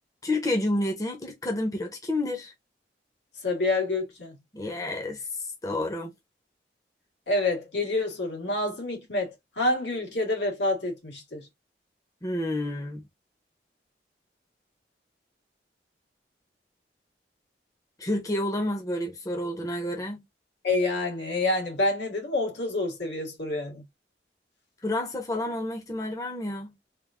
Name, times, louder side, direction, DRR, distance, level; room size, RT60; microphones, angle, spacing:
voice 1, 0.2-2.5 4.5-5.2 5.6-6.1 12.2-13.0 18.0-20.2 24.8-26.7, left 1 dB, 20° left, 0.7 m, -29 dB
voice 2, 3.4-4.4 7.3-11.5 20.6-23.8, left 2 dB, 90° left, 1.8 m, -28 dB
3.5 x 2.5 x 3.5 m
head